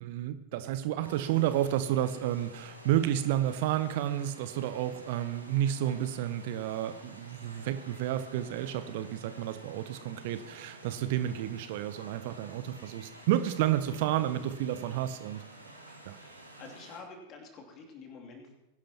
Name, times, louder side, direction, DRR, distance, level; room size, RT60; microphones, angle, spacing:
voice 1, 0.0-15.4 16.0-16.2, right 12 dB, 50° right, 12 dB, 0.7 m, -31 dB
sound 1, 1.0-17.0, right 1 dB, 85° right, 1.7 m, -51 dB
voice 2, 15.9-18.5, left 4 dB, 35° left, 1 dB, 2.8 m, -49 dB
21.0 x 11.5 x 3.0 m, 0.98 s
figure-of-eight pair, 90°, 0 cm